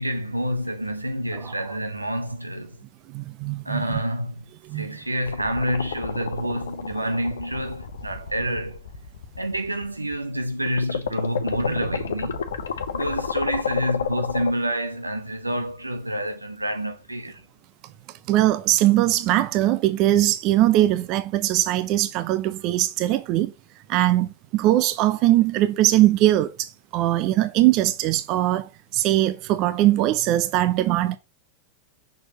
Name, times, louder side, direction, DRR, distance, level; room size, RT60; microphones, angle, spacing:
voice 1, 0.0-2.8 3.6-4.4 4.7-8.8 9.4-12.4 12.9-17.4, equal, 85° right, 0.9 m, -28 dB
voice 2, 3.1-4.0 4.6-4.9 18.3-23.5 23.9-31.2, right 14 dB, 40° right, 0.6 m, -21 dB
sound 1, 5.3-10.2 10.7-14.5, left 7 dB, 65° left, 0.8 m, -30 dB
6.3 x 6.2 x 2.9 m
figure-of-eight pair, 90°, 0 cm